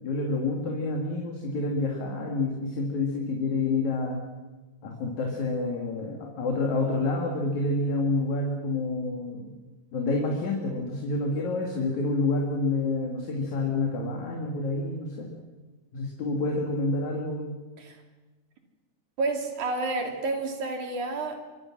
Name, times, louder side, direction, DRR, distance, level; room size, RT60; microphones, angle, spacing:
voice 1, 0.0-4.2 4.8-9.5 9.9-15.3 15.9-17.5, left 3 dB, 70° left, 0 dB, 4.1 m, -28 dB
voice 2, 19.2-21.4, right 3 dB, 80° right, 3 dB, 4.3 m, -30 dB
26.5 x 24.0 x 6.3 m, 1.2 s
omnidirectional pair, 3.4 m